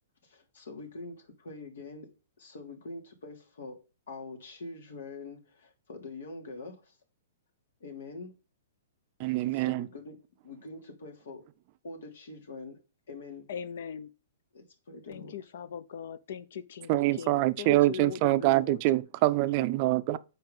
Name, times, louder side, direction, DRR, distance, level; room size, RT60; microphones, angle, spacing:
voice 1, 0.2-3.8 4.1-7.0 7.8-8.4 9.5-11.5 11.8-12.8 13.1-13.5 14.5-15.5 19.9-20.2, left 3 dB, 80° left, 3.0 m, -45 dB
voice 2, 9.2-9.8 16.9-20.2, right 17 dB, 35° right, 0.5 m, -25 dB
voice 3, 13.5-14.1 15.1-18.8, left 8 dB, 65° left, 0.8 m, -40 dB
7.8 x 4.8 x 5.3 m
hypercardioid pair, 155°, 0 cm